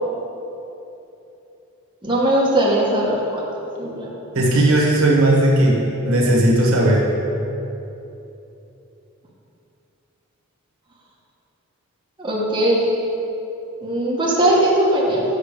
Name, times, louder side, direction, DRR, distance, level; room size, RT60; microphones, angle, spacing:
voice 1, 2.0-3.4 3.8-4.1 12.2-12.8 13.8-15.2, right 1 dB, 20° right, -5 dB, 1.1 m, -19 dB
voice 2, 4.3-7.1, right 1 dB, 75° right, -2 dB, 1.3 m, -16 dB
6.5 x 5.8 x 5.2 m, 2.9 s
head